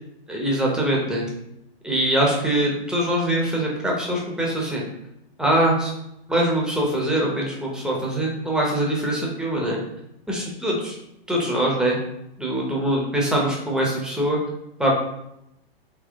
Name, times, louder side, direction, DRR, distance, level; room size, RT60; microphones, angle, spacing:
voice 1, 0.3-1.3 1.8-4.8 5.4-5.9 6.3-9.8 10.3-10.9 11.3-12.0 12.4-14.4 14.8-14.9, right 1 dB, ahead, -3 dB, 0.8 m, -23 dB
3.9 x 3.0 x 3.5 m, 0.82 s
hypercardioid pair, 125°, 30 cm